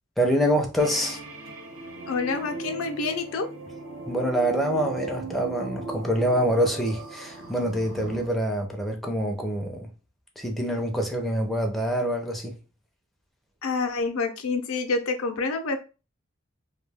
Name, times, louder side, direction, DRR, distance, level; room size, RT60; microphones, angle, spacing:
voice 1, 0.2-1.2 4.1-9.9 10.4-12.6, equal, ahead, 0.4 m, -25 dB
sound 1, 0.8-8.3, right 3 dB, 80° right, 0.7 m, -38 dB
voice 2, 2.1-3.5 13.6-15.8, left 4 dB, 80° left, 0.5 m, -27 dB
2.3 x 2.2 x 3.3 m
head